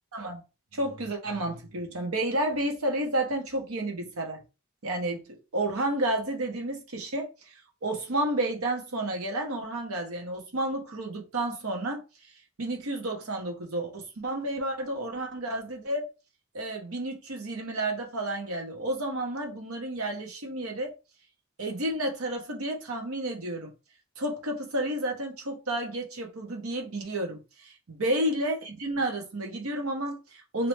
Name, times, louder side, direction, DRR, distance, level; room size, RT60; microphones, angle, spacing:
voice 1, 0.7-4.4 4.8-5.2 5.5-7.5 7.8-12.0 12.6-16.0 16.5-21.0 21.6-23.7 24.2-30.7, right 1 dB, 80° right, 1.0 m, -31 dB
3.1 x 2.9 x 3.2 m
head